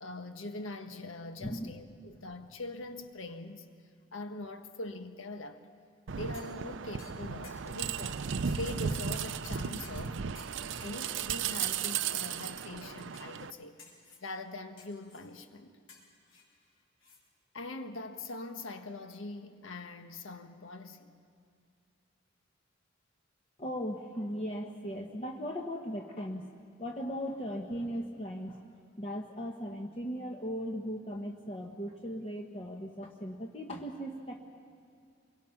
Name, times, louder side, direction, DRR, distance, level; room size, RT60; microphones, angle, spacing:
voice 1, 0.0-3.7 4.1-5.6 6.1-10.2 10.8-13.7 14.2-15.8 17.5-21.1, left 2 dB, 85° left, 1.3 m, -42 dB
voice 2, 1.4-1.7 23.6-26.5 26.8-28.6 29.0-34.4, equal, 30° left, 1.1 m, -38 dB
sound 1, 6.1-13.5, right 7 dB, 70° right, 0.5 m, -35 dB
sound 2, 6.3-6.6 7.0-8.0 8.5-9.4 9.8-10.1 10.4-11.0 11.4-11.9 12.6-12.7 13.1-13.5 13.8-14.3 14.8-15.3 15.9-17.2 17.6-17.7, left 4 dB, 70° left, 3.9 m, -57 dB
26.0 x 22.5 x 5.9 m
head